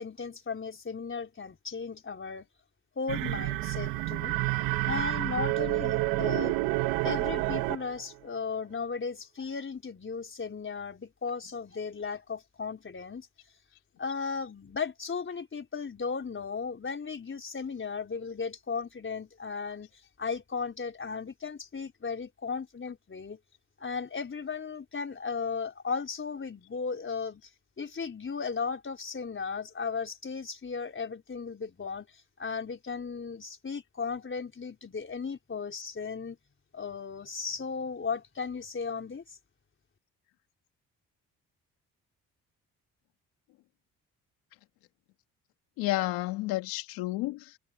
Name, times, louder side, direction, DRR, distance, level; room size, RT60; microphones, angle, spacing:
voice 1, 0.0-2.5 3.0-4.3 4.8-6.6 7.0-13.3 14.0-19.9 20.2-23.4 23.8-27.4 27.8-32.1 32.4-36.4 36.7-39.4, left 5 dB, 35° left, 4.5 m, -36 dB
sound 1, 3.1-8.0, right 19 dB, 85° right, 1.6 m, -29 dB
voice 2, 45.8-47.6, left 18 dB, 90° left, 2.1 m, -31 dB
supercardioid pair, 60°, 35 cm